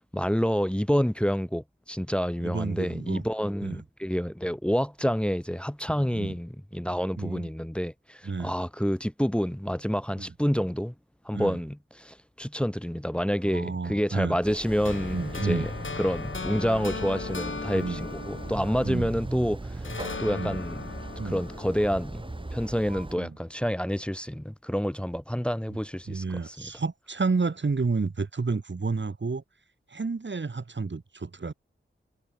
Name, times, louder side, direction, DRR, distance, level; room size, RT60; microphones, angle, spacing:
voice 1, 0.0-10.9 11.3-15.7 16.0-19.9 20.2-20.8 21.2-22.2 22.5-26.6, equal, 5° left, 1.9 m, -28 dB
voice 2, 2.4-3.3 3.6-3.8 6.0-6.3 7.2-7.5 8.2-8.5 10.2-10.3 11.3-11.6 13.4-14.4 15.1-15.7 17.0-17.1 17.7-18.1 18.8-19.1 20.3-20.6 21.2-21.4 23.2-23.4 26.1-29.4 29.9-31.5, right 4 dB, 60° right, 3.0 m, -31 dB
sound 1, 14.4-23.2, right 2 dB, 25° right, 1.2 m, -38 dB
sound 2, 14.8-19.4 19.8-22.9, left 4 dB, 70° left, 5.0 m, -37 dB
wide cardioid pair, 55°, 21 cm